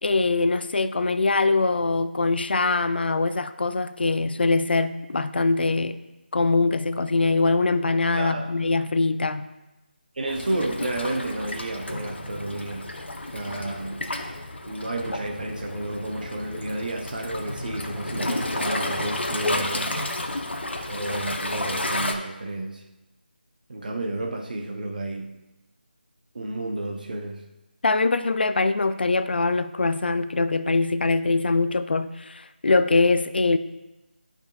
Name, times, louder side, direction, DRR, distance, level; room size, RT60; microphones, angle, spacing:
voice 1, 0.0-6.0 6.3-9.5 27.8-33.6, left 3 dB, 65° left, 12 dB, 0.4 m, -23 dB
voice 2, 8.2-8.6 10.2-12.9 13.3-14.0 14.6-20.0 20.9-22.8 23.7-25.3 26.3-27.4, right 2 dB, 50° right, 3 dB, 0.6 m, -31 dB
Waves surf, 10.3-22.1, left 2 dB, 90° left, 0.8 m, -31 dB
10.5 x 5.3 x 2.3 m, 1.0 s
figure-of-eight pair, 165°, 6 cm